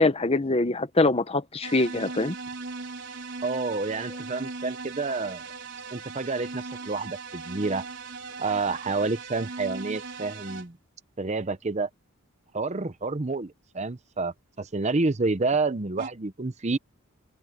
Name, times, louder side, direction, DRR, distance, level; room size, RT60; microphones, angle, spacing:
voice 1, 0.0-2.3, left 2 dB, 30° left, 1.0 m, -23 dB
sound 1, 1.6-10.7 16.0-16.1, right 4 dB, 55° right, 4.3 m, -38 dB
voice 2, 3.4-5.4 5.9-7.8 8.4-10.8 11.2-11.9 12.5-16.8, right 3 dB, 30° right, 0.8 m, -29 dB
open air
head